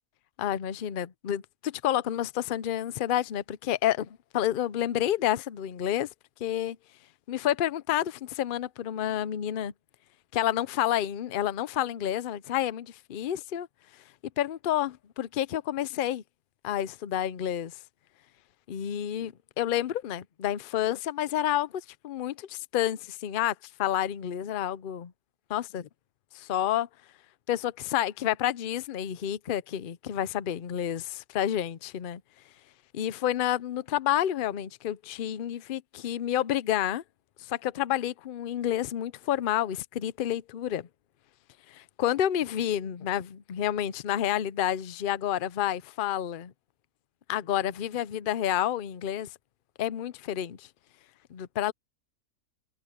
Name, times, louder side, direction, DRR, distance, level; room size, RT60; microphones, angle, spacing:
voice 1, 0.4-6.1 6.4-6.8 7.3-9.7 10.3-13.7 14.4-16.2 16.6-17.7 18.7-25.1 25.5-25.9 26.3-26.9 27.5-31.0 31.3-32.2 32.9-37.0 37.5-40.9 41.7-46.5 47.3-49.3 49.8-50.7 51.3-51.7, left 11 dB, 55° left, 0.6 m, -29 dB
omnidirectional pair, 1.5 m